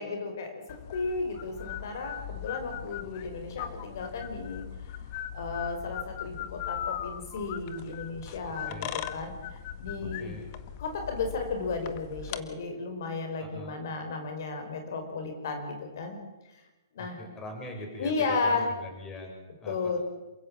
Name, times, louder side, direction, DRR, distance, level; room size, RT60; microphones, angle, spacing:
voice 1, 0.0-5.1 5.3-9.3 9.8-10.3 10.8-16.2 16.9-17.2 18.0-18.7 19.7-20.0, left 4 dB, 60° left, 6 dB, 4.8 m, -34 dB
sound 1, 0.7-12.4, left 10 dB, 40° left, 1.6 m, -39 dB
voice 2, 8.7-9.0 10.2-10.5 13.4-13.8 17.0-20.0, left 1 dB, 15° left, 3 dB, 5.9 m, -42 dB
28.0 x 16.0 x 7.4 m, 1.1 s
hypercardioid pair, 140°, 2 cm